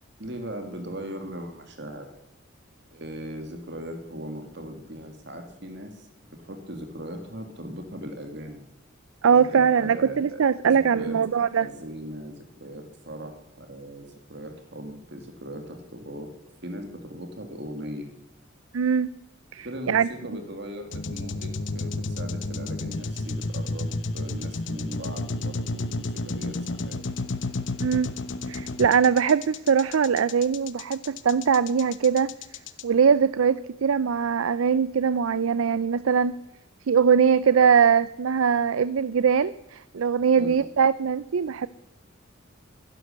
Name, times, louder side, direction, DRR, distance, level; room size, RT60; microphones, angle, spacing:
voice 1, 0.2-2.1 2.9-8.6 9.3-11.2 11.6-16.3 16.6-18.1 19.6-27.0 40.3-40.7, equal, 55° right, 5 dB, 2.1 m, -39 dB
voice 2, 9.2-11.7 18.7-19.1 19.5-20.1 27.8-28.1 28.5-32.3 32.8-36.4 36.9-41.7, right 6 dB, 90° right, 16 dB, 0.5 m, -21 dB
sound 1, 20.9-32.8, left 2 dB, 65° left, 1.0 m, -31 dB
15.5 x 11.0 x 6.7 m, 0.92 s
head